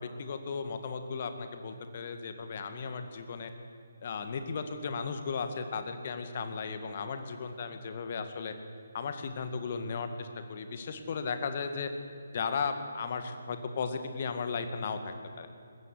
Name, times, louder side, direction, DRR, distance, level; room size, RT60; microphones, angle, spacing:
voice 1, 0.0-3.5 4.0-8.5 8.9-11.9 12.3-15.5, left 5 dB, 40° left, 8 dB, 1.9 m, -35 dB
20.5 x 15.5 x 8.2 m, 2.4 s
figure-of-eight pair, 145°, 0 cm